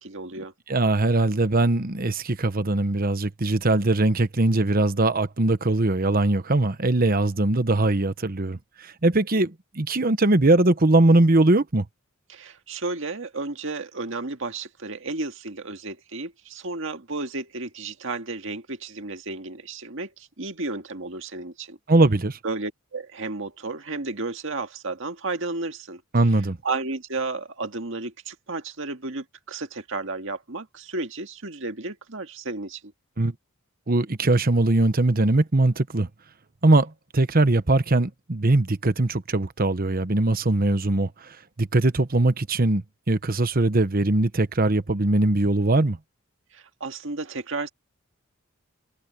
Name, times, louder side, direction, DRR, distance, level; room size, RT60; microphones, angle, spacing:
voice 1, 0.0-0.5 12.3-21.8 22.4-26.0 26.6-32.9 46.5-47.7, right 3 dB, 65° right, 1.9 m, -33 dB
voice 2, 0.7-11.9 21.9-22.4 26.1-26.6 33.2-33.3 33.9-36.1 36.6-41.1 41.6-46.0, right 2 dB, 45° right, 1.1 m, -21 dB
head